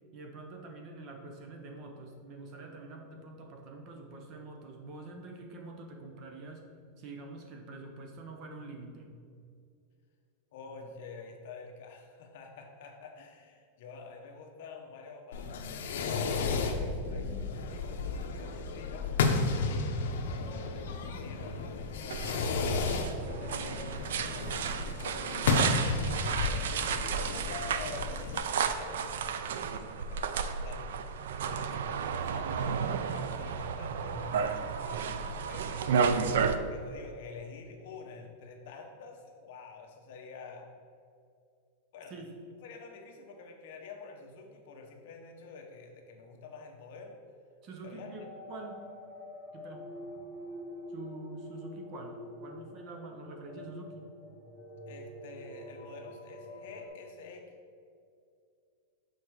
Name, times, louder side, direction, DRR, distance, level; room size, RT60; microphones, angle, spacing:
voice 1, 0.1-6.7 7.0-9.2 42.1-42.3 47.6-48.8 49.5-49.9 50.9-54.1, right 3 dB, 30° right, 3 dB, 0.7 m, -46 dB
voice 2, 10.5-19.1 19.6-40.7 41.9-42.2 42.6-47.2 47.8-48.1 54.9-57.5, left 4 dB, 55° left, 2 dB, 0.9 m, -48 dB
Fireworks, 15.3-28.4, left 4 dB, 80° left, 0.7 m, -33 dB
sound 1, 22.1-36.6, right 6 dB, 85° right, 0.4 m, -32 dB
sound 2, 48.2-56.9, left 1 dB, 15° left, 1.2 m, -46 dB
6.8 x 4.4 x 4.7 m, 2.4 s
supercardioid pair, 175°, 0 cm